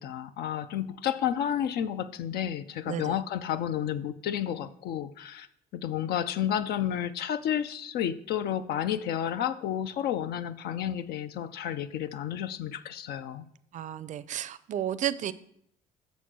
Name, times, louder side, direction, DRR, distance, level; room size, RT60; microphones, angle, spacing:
voice 1, 0.0-5.5 5.7-13.4, left 10 dB, 70° left, 12 dB, 0.6 m, -31 dB
voice 2, 13.7-15.3, right 10 dB, 45° right, 15 dB, 0.4 m, -32 dB
6.8 x 4.2 x 6.1 m, 0.73 s
cardioid pair, 110°, 17 cm